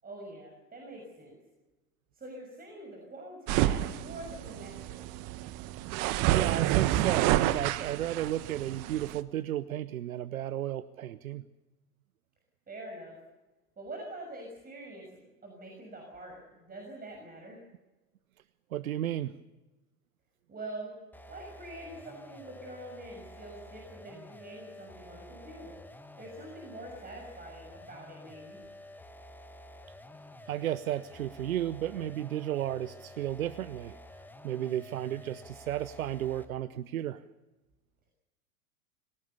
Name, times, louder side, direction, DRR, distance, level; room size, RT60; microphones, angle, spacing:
voice 1, 0.0-1.4 2.1-4.9 12.7-13.2 13.8-17.6 20.5-20.9 21.3-25.8 26.2-28.6, right 1 dB, 20° right, 1 dB, 6.5 m, -45 dB
sound 1, 3.5-9.2, right 14 dB, 45° right, 1.3 m, -29 dB
voice 2, 6.3-11.5 18.7-19.4 30.5-34.0 34.4-37.2, right 12 dB, 70° right, 16 dB, 0.9 m, -33 dB
sound 2, 21.1-36.6, left 1 dB, 5° left, 1.4 m, -50 dB
26.5 x 18.0 x 7.0 m, 1.1 s
figure-of-eight pair, 85°, 44 cm